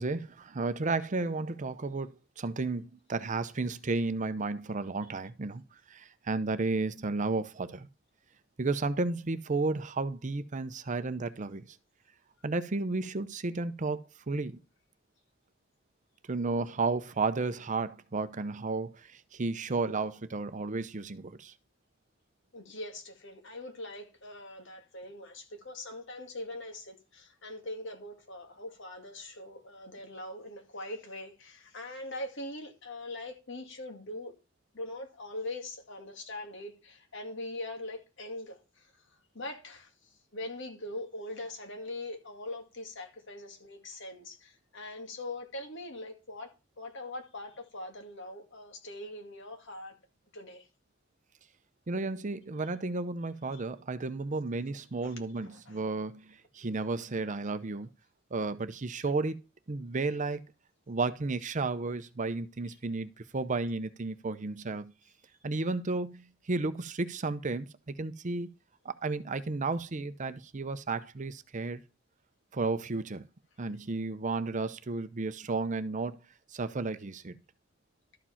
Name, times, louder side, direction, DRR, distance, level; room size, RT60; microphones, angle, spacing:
voice 1, 0.0-5.6 5.9-7.9 8.6-11.6 12.4-14.6 16.3-21.5 51.9-57.9 58.3-59.4 59.7-60.4 60.9-64.9 65.4-68.5 68.8-71.8 72.5-73.3 73.6-76.2 76.5-77.3, right 3 dB, 40° right, 0.6 m, -33 dB
voice 2, 22.5-34.3 34.7-38.9 39.3-39.9 40.3-50.0 50.3-50.7 53.5-53.6 55.0-55.8 62.7-62.8, left 1 dB, 65° left, 2.3 m, -42 dB
12.5 x 4.9 x 5.7 m
head